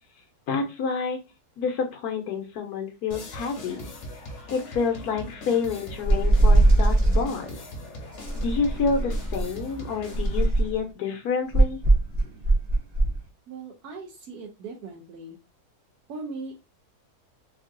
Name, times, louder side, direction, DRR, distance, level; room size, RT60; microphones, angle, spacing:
voice 1, 0.5-1.2 1.6-3.9 4.5-7.6 8.3-11.8, left 5 dB, 75° left, 4 dB, 1.2 m, -28 dB
sound 1, 3.1-10.5, equal, 55° left, 1.0 m, -40 dB
sound 2, 6.0-7.3 8.2-9.5 10.1-10.8 11.5-13.2, right 2 dB, 40° right, 0.6 m, -20 dB
voice 2, 13.5-15.4 16.1-16.6, right 3 dB, 75° right, -3 dB, 1.2 m, -39 dB
3.6 x 2.4 x 2.5 m, 0.26 s
omnidirectional pair, 1.7 m